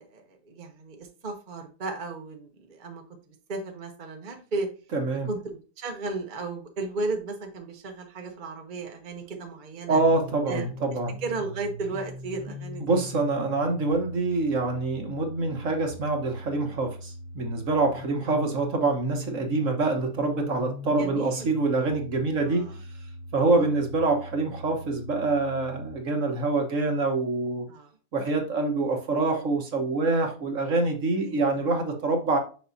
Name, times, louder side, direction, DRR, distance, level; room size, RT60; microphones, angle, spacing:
voice 1, 0.0-3.0 3.5-4.7 5.3-10.0 10.5-10.7 11.2-12.9 21.0-21.5 22.4-22.8 23.6-23.7 27.7-27.9 31.2-31.6, right 3 dB, 35° right, 3 dB, 1.0 m, -34 dB
voice 2, 4.9-5.3 9.9-11.2 12.8-22.7 23.3-27.7 28.1-32.4, right 3 dB, 50° right, 4 dB, 1.4 m, -25 dB
sound 1, 9.9-25.9, equal, 10° left, 1.3 m, -41 dB
6.4 x 5.7 x 2.7 m, 0.36 s
omnidirectional pair, 1.8 m